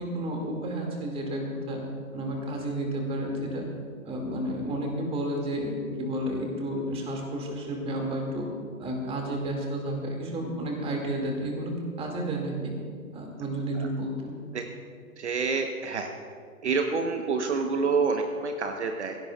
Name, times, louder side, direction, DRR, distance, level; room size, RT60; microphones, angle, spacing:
voice 1, 0.0-1.8 2.1-3.6 4.0-8.5 8.8-12.7 13.1-14.3, right 1 dB, 15° right, 1 dB, 2.3 m, -31 dB
voice 2, 15.2-16.1 16.6-19.2, right 4 dB, 55° right, 4 dB, 1.2 m, -27 dB
23.0 x 16.5 x 2.4 m, 2.2 s
figure-of-eight pair, 125°, 42 cm